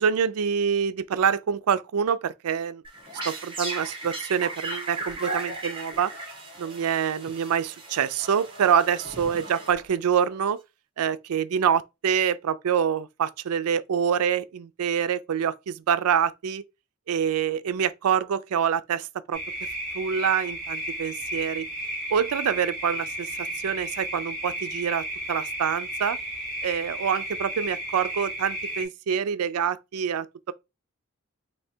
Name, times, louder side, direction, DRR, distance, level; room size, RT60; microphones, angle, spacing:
voice 1, 0.0-2.8 3.2-6.1 6.6-10.6 11.0-16.6 17.1-19.4 19.9-21.7 22.1-26.2 26.6-30.5, right 7 dB, 90° right, 0.4 m, -26 dB
sound 1, 2.8-10.2, right 2 dB, 25° right, 1.3 m, -37 dB
sound 2, 19.3-28.9, right 1 dB, 5° left, 2.3 m, -33 dB
3.3 x 2.7 x 4.3 m
head